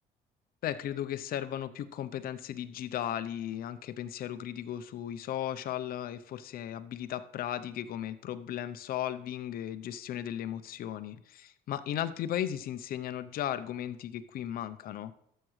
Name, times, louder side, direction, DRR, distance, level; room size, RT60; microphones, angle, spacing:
voice 1, 0.6-15.1, left 11 dB, 60° left, 12 dB, 0.6 m, -36 dB
12.5 x 7.4 x 3.2 m, 0.72 s
cardioid pair, 110°, 17 cm